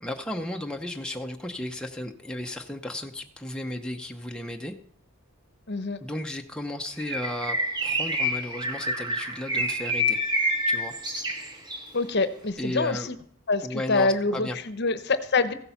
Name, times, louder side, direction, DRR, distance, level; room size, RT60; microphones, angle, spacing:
voice 1, 0.0-4.7 6.0-7.6 7.8-10.2 10.7-11.0 12.6-13.1 13.6-14.6, left 1 dB, 5° left, 2 dB, 0.7 m, -34 dB
voice 2, 5.7-6.0 11.9-13.2 13.5-15.5, left 3 dB, 50° left, 12 dB, 0.9 m, -25 dB
Bird, 7.0-11.9, equal, 20° right, 1.5 m, -28 dB
15.5 x 8.5 x 5.8 m, 0.62 s
head